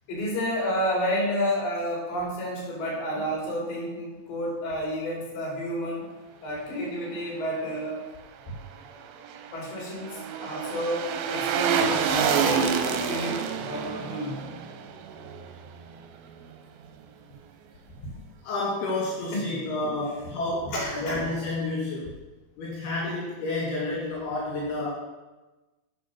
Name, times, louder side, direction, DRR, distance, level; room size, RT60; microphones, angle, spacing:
voice 1, 0.1-6.1 6.4-8.1 9.5-14.4 19.3-19.7 20.7-21.2, equal, 65° left, -3 dB, 4.5 m, -30 dB
sound 1, 8.9-16.1 16.4-16.5, right 7 dB, 80° right, 2.5 m, -28 dB
voice 2, 18.4-20.8 21.0-22.1 22.6-25.0, left 2 dB, 85° left, -5 dB, 3.9 m, -30 dB
10.0 x 5.3 x 6.2 m, 1.1 s
omnidirectional pair, 4.4 m